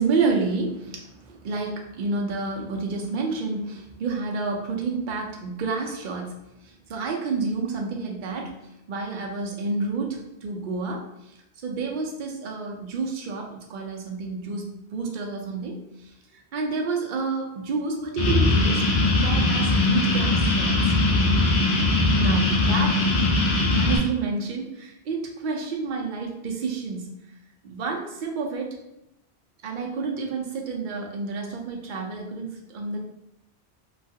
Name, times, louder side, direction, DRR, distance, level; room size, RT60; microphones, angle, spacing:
voice 1, 0.0-6.4 6.6-8.5 8.9-11.0 11.6-15.8 16.5-18.8 19.2-20.8 22.2-23.0 23.7-27.1 27.6-28.7 29.6-33.0, right 4 dB, 55° right, 0 dB, 0.6 m, -29 dB
sound 1, 18.2-24.0, left 2 dB, 80° left, 0.9 m, -21 dB
3.1 x 2.3 x 2.6 m, 0.85 s
omnidirectional pair, 1.1 m